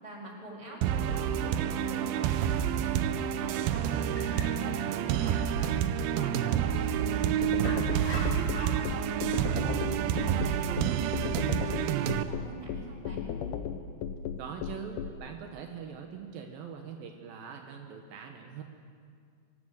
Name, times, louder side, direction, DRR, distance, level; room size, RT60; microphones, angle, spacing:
voice 1, 0.0-5.7 6.1-8.8 9.3-13.2, right 2 dB, 10° right, -3 dB, 3.8 m, -45 dB
sound 1, 0.8-12.2, right 10 dB, 90° right, 2.6 m, -29 dB
Dog, 0.9-11.5, left 1 dB, 30° left, 4.0 m, -48 dB
sound 2, 7.4-15.1, left 8 dB, 70° left, 2.2 m, -35 dB
voice 2, 14.4-18.6, right 6 dB, 75° right, 3 dB, 2.8 m, -42 dB
25.0 x 13.5 x 7.8 m, 2.2 s
omnidirectional pair, 4.3 m